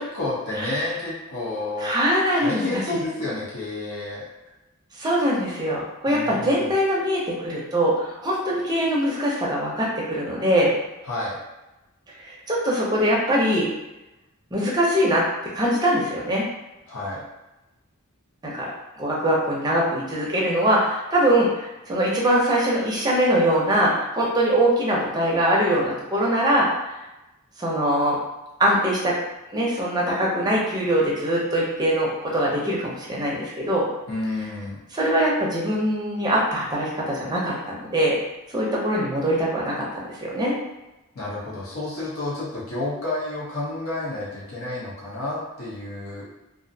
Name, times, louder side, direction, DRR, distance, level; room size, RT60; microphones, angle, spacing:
voice 1, 0.0-1.9 2.3-4.2 6.1-6.7 11.0-11.4 16.9-17.2 34.1-34.8 41.1-46.3, left 2 dB, 65° left, -6 dB, 0.7 m, -30 dB
voice 2, 1.8-2.6 5.0-10.7 12.2-13.7 14.5-15.3 15.5-16.5 18.4-18.7 19.0-26.7 27.6-28.2 28.6-29.2 29.5-33.9 34.9-38.2 38.5-39.9 40.2-40.5, equal, 20° right, -4 dB, 0.5 m, -22 dB
2.5 x 2.0 x 2.6 m, 1.0 s
head